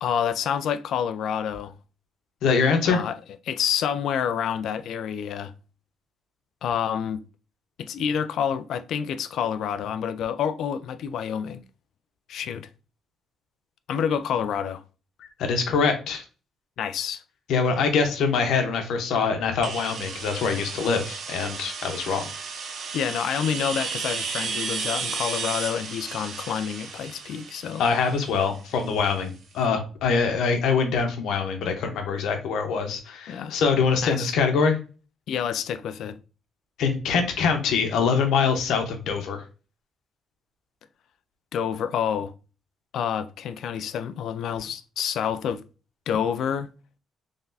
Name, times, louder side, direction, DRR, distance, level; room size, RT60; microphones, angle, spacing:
voice 1, 0.0-1.7 2.9-3.2 3.5-5.5 6.6-7.2 7.8-11.6 12.3-12.7 13.9-14.8 16.8-17.2 22.9-27.8 33.3-33.6 34.0-34.3 35.3-36.2 41.5-42.3 42.9-45.6 46.1-46.7, left 8 dB, 65° left, 0.3 m, -28 dB
voice 2, 2.4-3.0 15.2-16.2 17.5-22.3 27.8-34.8 36.8-39.4, left 5 dB, 85° left, 0.9 m, -24 dB
sound 1, 19.6-29.3, right 5 dB, 55° right, 0.7 m, -34 dB
3.9 x 3.5 x 2.6 m
cardioid pair, 180°, 0 cm